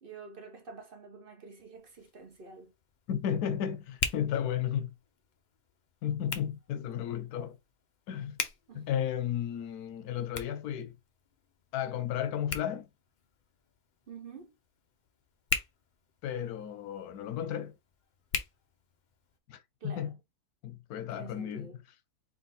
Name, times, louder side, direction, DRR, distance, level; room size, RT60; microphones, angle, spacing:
voice 1, 0.0-2.7 8.7-8.9 14.1-14.5 19.8-20.2 21.1-21.8, right 4 dB, 50° right, 0.7 m, -48 dB
Hands, 1.7-19.4, left 6 dB, 60° left, 0.4 m, -42 dB
voice 2, 3.1-4.9 6.0-7.6 8.1-8.4 8.7-11.0 11.7-12.9 16.2-17.7 19.5-20.1 20.6-21.7, left 9 dB, 90° left, 1.2 m, -33 dB
3.4 x 2.7 x 4.0 m
omnidirectional pair, 1.6 m